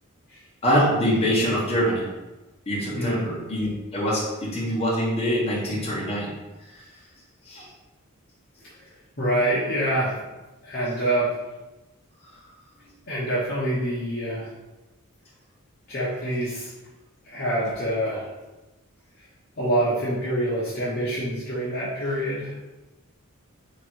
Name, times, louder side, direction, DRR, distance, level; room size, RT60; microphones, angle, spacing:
voice 1, 0.6-2.1 2.7-6.3 7.4-7.7, equal, 30° left, -6 dB, 1.2 m, -24 dB
voice 2, 2.9-3.3 8.8-8.9 9.2-10.2 10.6-11.3 13.1-14.5 15.9-16.7 17.2-18.3 19.6-22.5, right 1 dB, 45° left, -8 dB, 0.9 m, -26 dB
3.6 x 3.0 x 4.5 m, 1.1 s
head